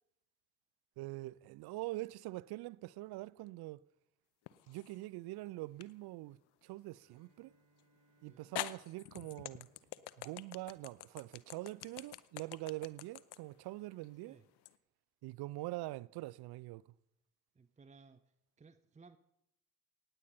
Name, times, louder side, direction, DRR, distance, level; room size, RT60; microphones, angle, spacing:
voice 1, 1.0-3.8 4.7-7.5 8.2-9.7 10.2-14.4 15.2-16.8, right 19 dB, 60° right, 0.5 m, -44 dB
sound 1, 4.5-5.0 5.8-5.9 7.8-7.9 8.6-14.8, left 16 dB, 65° left, 0.8 m, -45 dB
Bowed string instrument, 7.0-11.1, right 3 dB, 40° right, 3.6 m, -73 dB
voice 2, 17.5-18.2 18.6-19.2, right 4 dB, 15° right, 0.7 m, -60 dB
18.0 x 8.9 x 5.4 m
hypercardioid pair, 45°, 43 cm